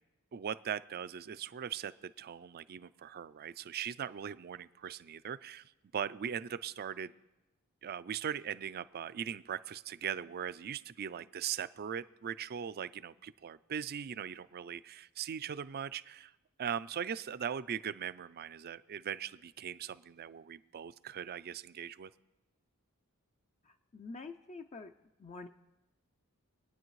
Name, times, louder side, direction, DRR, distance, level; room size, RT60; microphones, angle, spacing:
voice 1, 0.3-7.1 7.8-16.3 16.6-22.1, right 8 dB, 45° right, 15 dB, 0.4 m, -40 dB
voice 2, 23.6-24.9 25.2-25.5, left 3 dB, 30° left, 6 dB, 0.4 m, -47 dB
24.0 x 9.5 x 3.1 m, 1.0 s
head